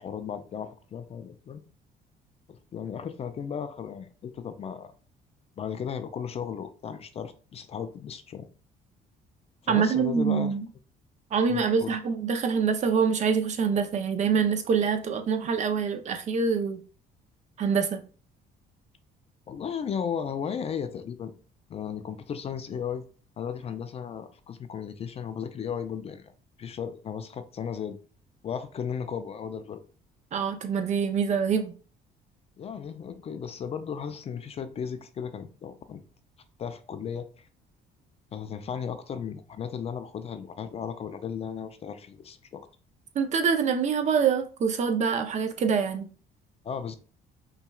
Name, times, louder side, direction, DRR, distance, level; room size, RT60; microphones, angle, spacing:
voice 1, 0.0-1.6 2.5-4.9 5.6-8.5 9.6-10.6 11.5-12.0 19.5-21.3 21.7-23.0 23.4-26.3 26.6-28.0 28.4-29.8 32.6-36.0 36.6-37.5 38.3-42.7 46.6-47.0, left 7 dB, 35° left, 0.4 m, -35 dB
voice 2, 9.7-10.7 11.3-16.8 17.6-18.0 30.3-31.8 43.2-46.1, right 6 dB, 45° right, 0.5 m, -25 dB
5.7 x 2.3 x 2.3 m
cardioid pair, 110°, 17 cm